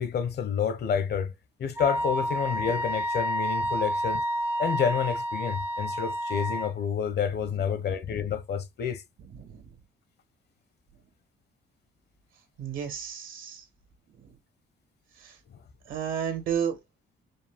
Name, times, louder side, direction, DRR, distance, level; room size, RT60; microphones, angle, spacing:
voice 1, 0.0-1.3 1.6-4.2 4.6-9.0, left 7 dB, 55° left, 0.8 m, -29 dB
Wind instrument woodwind instrument, 1.8-6.7, equal, 10° right, 0.4 m, -29 dB
voice 2, 9.3-9.7 12.6-13.6 14.1-14.3 15.2-15.4 15.9-16.8, right 8 dB, 80° right, 1.8 m, -32 dB
5.1 x 2.4 x 3.5 m
cardioid pair, 90°, 20 cm